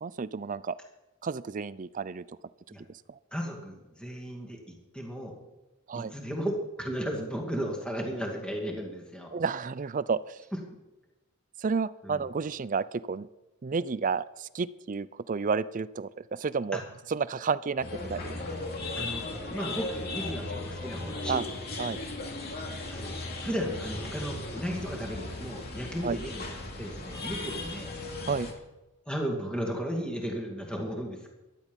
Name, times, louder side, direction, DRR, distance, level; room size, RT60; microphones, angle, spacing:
voice 1, 0.0-0.7 1.2-2.2 5.9-6.1 9.3-10.4 11.6-13.3 13.6-16.8 17.1-18.4 21.3-21.4 21.8-22.0 26.0-26.2 28.3-28.5, right 5 dB, 35° right, 17 dB, 0.4 m, -31 dB
voice 2, 3.3-5.4 6.0-9.3 10.5-10.6 12.0-12.2 16.7-16.8 18.9-21.5 22.5-23.1 23.4-26.5 26.8-27.9 29.1-31.3, equal, 5° left, 0 dB, 2.3 m, -35 dB
sound 1, 17.8-28.5, left 2 dB, 45° left, 2.6 m, -37 dB
15.5 x 12.0 x 5.3 m, 1.0 s
head